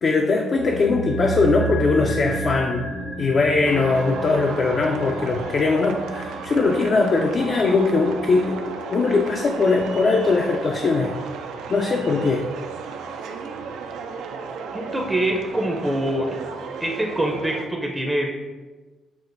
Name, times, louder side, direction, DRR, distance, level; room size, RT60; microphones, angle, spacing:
voice 1, 0.0-2.8 3.2-11.1 11.7-12.5, left 3 dB, 50° left, 1 dB, 0.4 m, -20 dB
sound 1, 0.6-10.8 11.1-11.2, right 2 dB, 75° left, 0.9 m, -33 dB
sound 2, 3.6-17.7, right 5 dB, 85° right, 0.3 m, -34 dB
voice 2, 14.7-16.4 16.8-18.3, right 1 dB, 10° right, 1 dB, 0.5 m, -24 dB
6.0 x 2.5 x 2.5 m, 1.2 s
cardioid pair, 90°, 0 cm